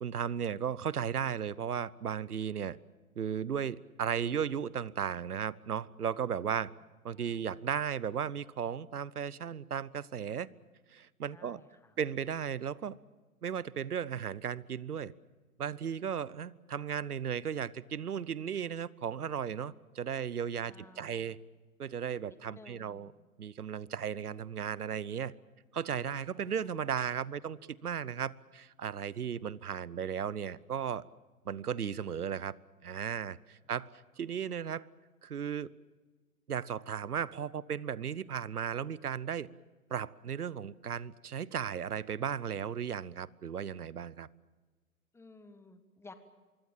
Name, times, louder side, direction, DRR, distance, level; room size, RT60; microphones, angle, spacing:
voice 1, 0.0-2.8 3.2-6.7 7.0-10.5 10.9-11.6 12.0-13.0 13.4-15.1 15.6-21.4 21.8-23.1 23.4-25.3 25.7-31.0 31.4-32.5 32.8-33.9 34.2-34.9 35.2-35.7 36.5-39.5 39.9-44.3, right 8 dB, 80° right, 22 dB, 1.0 m, -35 dB
voice 2, 7.1-7.6 11.3-12.0 20.6-21.4 22.3-23.3 26.2-26.7 33.6-33.7 34.3-34.4 45.1-46.1, left 3 dB, 5° left, 10 dB, 1.6 m, -56 dB
25.0 x 23.5 x 7.4 m, 1.3 s
figure-of-eight pair, 120°, 45 cm